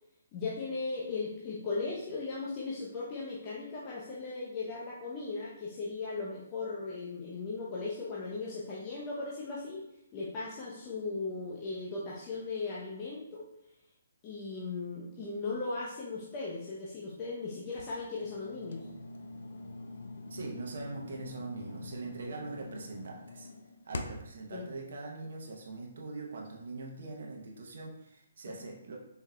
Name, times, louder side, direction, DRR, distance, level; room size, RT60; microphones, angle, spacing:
voice 1, 0.3-9.8 10.1-13.4 14.2-18.8 24.5-24.6 28.6-28.7, left 3 dB, 30° left, -6 dB, 0.6 m, -37 dB
sound 1, 17.7-24.4, left 3 dB, 70° left, 0.4 m, -44 dB
voice 2, 20.3-23.5 23.9-29.0, right 3 dB, 65° right, 0 dB, 0.7 m, -42 dB
4.5 x 3.4 x 2.2 m, 0.80 s
hypercardioid pair, 145°, 0 cm